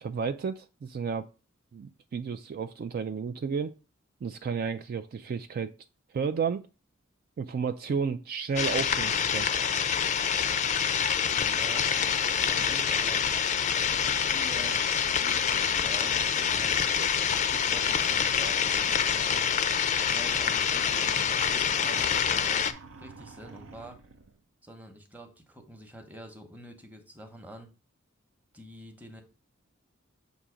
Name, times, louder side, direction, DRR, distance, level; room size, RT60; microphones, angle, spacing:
voice 1, 0.0-1.3 1.7-3.7 4.2-5.7 6.1-6.7 7.4-9.5, right 6 dB, 50° right, 10 dB, 0.3 m, -32 dB
sound 1, 8.6-22.7, left 7 dB, 35° left, 0.4 m, -26 dB
voice 2, 11.3-13.2 13.7-14.8 15.1-16.7 17.4-19.5 19.9-22.7 23.0-24.0 24.6-27.7 28.5-29.2, right 1 dB, 10° right, 4 dB, 0.9 m, -47 dB
sound 2, 20.1-24.4, right 4 dB, 75° right, 0.7 m, -49 dB
7.1 x 2.7 x 4.9 m, 0.33 s
head